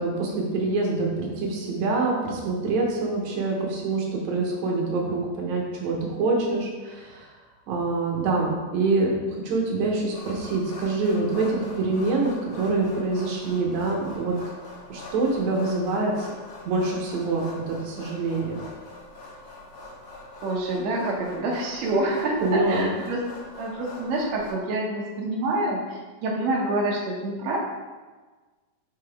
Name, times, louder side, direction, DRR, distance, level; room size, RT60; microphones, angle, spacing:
voice 1, 0.0-7.3 7.7-9.2 9.4-14.4 14.9-16.3 16.7-18.6 22.4-22.9, right 3 dB, 75° right, -1 dB, 1.7 m, -25 dB
sound 1, 10.1-24.5, left 2 dB, 65° left, 1.4 m, -43 dB
voice 2, 20.4-23.2 23.6-27.6, right 2 dB, 90° right, -2 dB, 1.5 m, -27 dB
5.8 x 5.4 x 3.4 m, 1.3 s
omnidirectional pair, 4.4 m